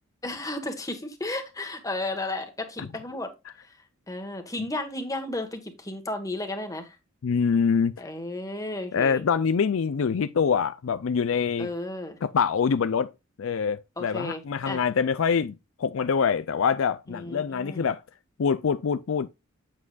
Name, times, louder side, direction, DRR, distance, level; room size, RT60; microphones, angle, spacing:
voice 1, 0.2-3.3 4.1-7.0 8.0-9.2 11.6-12.2 14.0-14.8 17.1-17.9, left 2 dB, 15° left, 1.5 m, -33 dB
voice 2, 7.2-8.1 8.9-11.7 12.2-13.1 13.4-18.0 18.4-19.3, left 6 dB, 70° left, 0.4 m, -25 dB
8.3 x 7.5 x 2.4 m
head